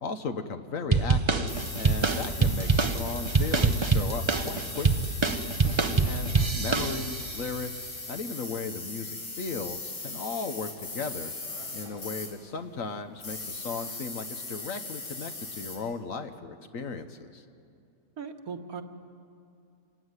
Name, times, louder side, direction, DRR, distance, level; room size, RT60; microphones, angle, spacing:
voice 1, 0.0-5.2 6.0-9.1 9.4-11.3 11.7-17.4, left 4 dB, 55° left, 8 dB, 1.2 m, -36 dB
sound 1, 0.9-7.3, right 4 dB, 30° right, 0.5 m, -25 dB
sound 2, 1.5-12.4 13.1-15.8, left 3 dB, 90° left, 3.9 m, -39 dB
voice 2, 18.2-18.8, right 6 dB, 60° right, 5 dB, 1.7 m, -39 dB
27.0 x 15.5 x 9.7 m, 2.5 s
omnidirectional pair, 1.8 m